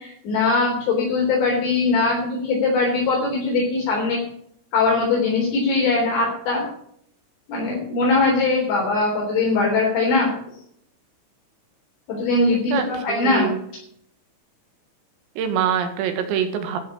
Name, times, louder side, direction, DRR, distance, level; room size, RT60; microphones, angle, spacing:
voice 1, 0.0-4.2 4.7-6.6 7.5-10.3 12.1-13.5, left 3 dB, 60° left, -3 dB, 5.8 m, -21 dB
voice 2, 12.7-13.6 15.4-16.8, right 8 dB, 85° right, 7 dB, 4.4 m, -24 dB
14.5 x 6.7 x 8.4 m, 0.67 s
omnidirectional pair, 5.9 m